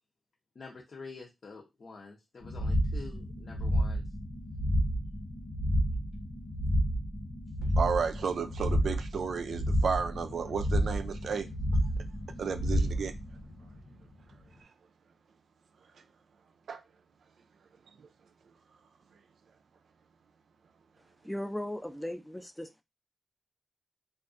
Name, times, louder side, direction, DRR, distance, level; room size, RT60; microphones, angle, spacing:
voice 1, 0.5-4.0, left 4 dB, 60° left, 0.6 m, -47 dB
sound 1, 2.4-14.2, equal, 85° left, 1.0 m, -31 dB
voice 2, 7.8-11.5 12.4-13.1 16.7-16.8, right 6 dB, 80° right, 0.3 m, -32 dB
voice 3, 21.2-22.7, left 1 dB, 5° left, 0.4 m, -37 dB
2.4 x 2.2 x 2.4 m
cardioid pair, 65°, 0 cm